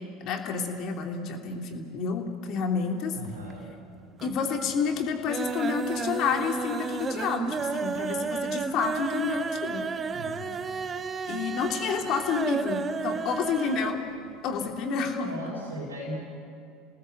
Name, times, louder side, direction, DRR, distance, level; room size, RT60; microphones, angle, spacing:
voice 1, 0.2-3.2 4.2-9.8 11.3-14.0 14.4-15.3, left 6 dB, 50° left, 3 dB, 3.0 m, -29 dB
voice 2, 3.1-3.7 10.1-10.6 15.2-16.2, equal, 90° right, -4 dB, 4.7 m, -37 dB
sound 1, 3.2-3.9 4.1-4.7 5.0-14.0 14.3-14.4 14.7-14.8, right 5 dB, 30° right, 1.2 m, -32 dB
29.0 x 19.0 x 7.9 m, 2.4 s
hypercardioid pair, 75°, 0 cm